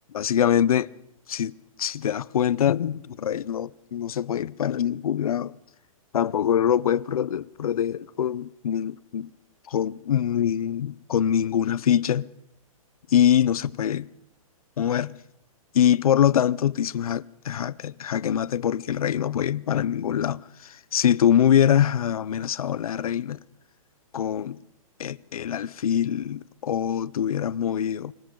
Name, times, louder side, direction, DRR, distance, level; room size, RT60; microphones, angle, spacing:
voice 1, 0.1-0.9 1.3-5.6 6.1-9.3 9.7-12.3 13.1-14.1 14.8-15.2 15.7-23.4 24.1-24.6 25.0-28.1, left 9 dB, 80° left, 0.7 m, -24 dB
28.0 x 25.0 x 3.8 m
hypercardioid pair, 170°, 18 cm